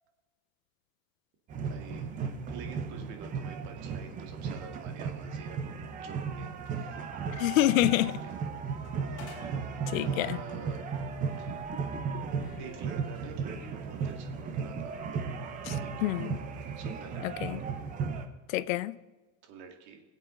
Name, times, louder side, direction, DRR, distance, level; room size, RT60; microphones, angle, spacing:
sound 1, 1.5-18.3, right 5 dB, 20° right, 0.7 m, -36 dB
voice 1, 1.7-2.2 2.5-5.6 6.0-6.5 6.7-7.0 8.0-8.3 10.0-10.8 11.4-11.7 12.6-14.9 15.8-16.1 16.8-17.6 19.4-20.0, right 6 dB, 45° right, 2.1 m, -47 dB
sound 2, 6.6-17.3, left 6 dB, 55° left, 2.5 m, -55 dB
voice 2, 7.4-8.2 9.9-10.4 15.6-16.4 17.2-17.6 18.5-18.9, left 16 dB, 85° left, 0.7 m, -27 dB
21.5 x 8.2 x 3.8 m
supercardioid pair, 165°, 39 cm